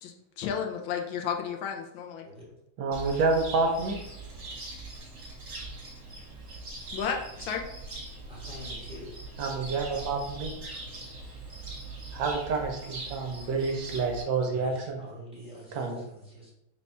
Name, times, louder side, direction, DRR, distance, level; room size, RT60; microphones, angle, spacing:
voice 1, 0.0-2.3 6.9-7.7, left 7 dB, 80° left, 3 dB, 1.3 m, -33 dB
voice 2, 2.8-4.0 9.4-10.5 12.1-15.0 15.7-16.0, right 4 dB, 75° right, 2 dB, 1.3 m, -28 dB
Cricket, 2.9-14.2, right 2 dB, 55° right, 1.5 m, -41 dB
voice 3, 8.3-9.1 14.3-16.5, equal, 5° right, -7 dB, 1.0 m, -45 dB
4.1 x 2.3 x 4.1 m, 0.85 s
omnidirectional pair, 2.2 m